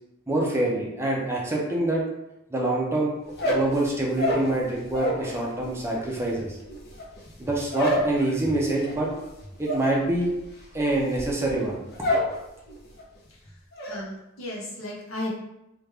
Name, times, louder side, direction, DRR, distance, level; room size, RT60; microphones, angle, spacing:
voice 1, 0.3-2.0 2.5-3.1 3.4-6.6 7.4-9.1 9.6-10.3 10.7-11.8, right 2 dB, 15° right, -3 dB, 0.6 m, -25 dB
sound 1, 3.3-5.3 5.6-12.4 12.7-13.2 13.5-14.0, left 1 dB, 55° left, 0.8 m, -29 dB
voice 2, 13.3-15.3, left 1 dB, 75° left, -4 dB, 1.0 m, -36 dB
3.1 x 2.4 x 3.4 m, 0.87 s
head